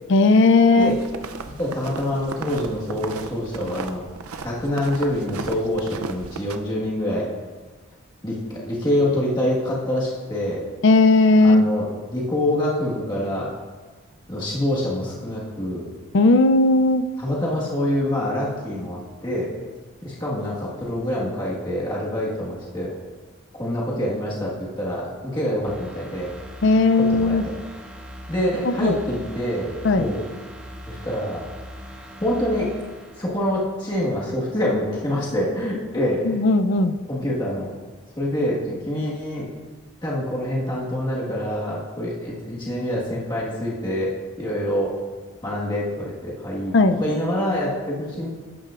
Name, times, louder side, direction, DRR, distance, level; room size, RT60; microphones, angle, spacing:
voice 1, 0.1-0.9 10.8-11.6 16.1-17.0 26.6-27.4 28.8-29.0 29.8-30.1 36.2-37.0 46.7-47.0, left 3 dB, 55° left, 10 dB, 0.5 m, -16 dB
sound 1, 0.8-6.6, right 4 dB, 85° right, 0.6 m, -35 dB
voice 2, 1.6-4.0 4.4-7.3 8.2-10.6 11.4-13.5 14.3-15.8 17.2-19.5 20.0-22.9 23.5-26.3 27.0-27.4 28.3-30.2 30.9-31.5 32.2-32.7 33.2-36.4 37.1-37.7 38.2-39.5 40.0-44.1 44.4-44.9 45.4-48.3, left 1 dB, 20° left, -6 dB, 1.5 m, -26 dB
sound 2, 25.6-34.3 34.7-34.8, equal, 5° right, 0.6 m, -41 dB
12.5 x 8.7 x 2.5 m, 1.4 s
head